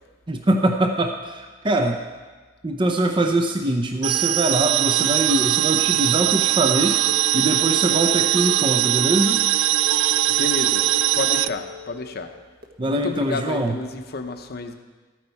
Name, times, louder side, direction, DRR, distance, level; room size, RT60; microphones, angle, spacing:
voice 1, 0.3-2.0 2.6-7.0 7.3-9.4 12.8-13.7, right 1 dB, 25° right, 4 dB, 0.6 m, -23 dB
sound 1, 4.0-11.5, right 14 dB, 80° right, 0.3 m, -21 dB
sound 2, 7.1-12.6, left 6 dB, 55° right, 1.3 m, -38 dB
voice 2, 10.3-10.9 11.1-12.3 12.8-14.7, left 3 dB, 55° left, 6 dB, 0.9 m, -30 dB
13.5 x 9.2 x 4.5 m, 1.3 s
head